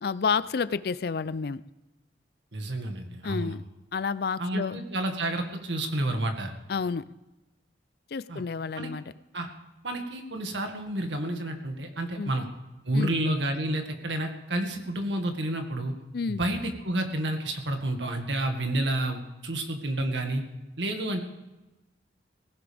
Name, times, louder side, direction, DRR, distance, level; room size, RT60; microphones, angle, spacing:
voice 1, 0.0-1.6 3.2-3.6 3.9-4.8 6.7-7.1 8.1-9.0 12.2-12.3 12.9-13.1 16.1-16.4, left 5 dB, 55° left, 16 dB, 0.4 m, -30 dB
voice 2, 2.5-3.6 4.4-6.5 8.3-8.4 8.8-8.9 9.3-9.5 9.8-12.5 12.8-15.9 16.3-20.4 20.8-21.2, right 1 dB, 80° right, 5 dB, 1.9 m, -30 dB
18.5 x 16.0 x 3.5 m, 1.1 s
head